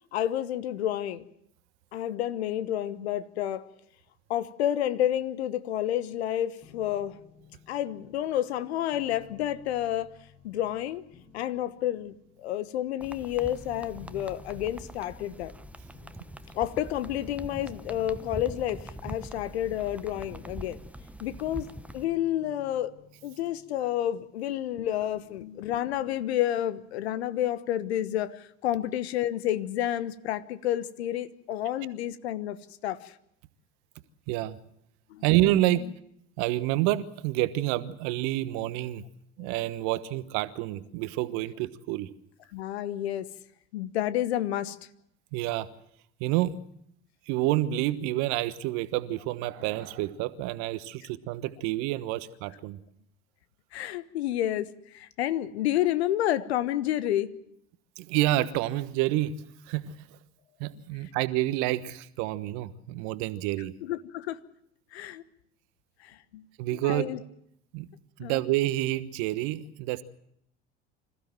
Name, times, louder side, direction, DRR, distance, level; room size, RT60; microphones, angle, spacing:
voice 1, 0.1-1.2 1.9-3.7 4.3-7.2 7.7-10.1 10.4-11.0 11.3-15.5 16.5-20.8 21.2-21.7 21.9-22.9 23.2-32.6 32.8-33.1 35.1-35.2 39.4-39.5 42.5-43.3 43.7-44.8 53.7-57.4 63.8-64.4 64.9-65.2 66.0-66.4 66.8-67.2 68.2-68.4, left 12 dB, 70° left, 1.2 m, -30 dB
sound 1, 6.6-25.6, left 7 dB, 50° left, 7.8 m, -57 dB
sound 2, 13.0-22.0, right 1 dB, 5° right, 1.0 m, -43 dB
voice 2, 34.3-34.6 35.2-35.9 36.4-39.0 39.4-42.1 45.3-45.7 46.2-46.6 47.3-52.8 58.0-59.4 59.7-60.2 60.6-63.7 66.6-67.1 67.7-67.9 68.2-70.0, right 15 dB, 55° right, 1.3 m, -28 dB
26.0 x 15.5 x 7.5 m
figure-of-eight pair, 65°, 33 cm